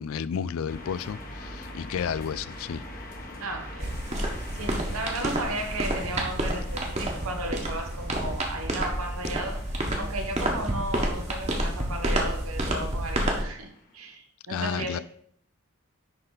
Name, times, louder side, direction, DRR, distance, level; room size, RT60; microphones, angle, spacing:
voice 1, 0.0-2.8 14.5-15.0, left 7 dB, 70° left, 0.3 m, -31 dB
sound 1, 0.7-14.1, left 2 dB, 40° left, 1.4 m, -46 dB
sound 2, 0.7-13.2, right 1 dB, 5° right, 0.3 m, -41 dB
voice 2, 3.4-13.7 13.9-15.0, right 2 dB, 85° right, 1.5 m, -35 dB
sound 3, 3.8-13.4, right 1 dB, 30° right, 1.4 m, -30 dB
10.5 x 4.1 x 4.1 m
head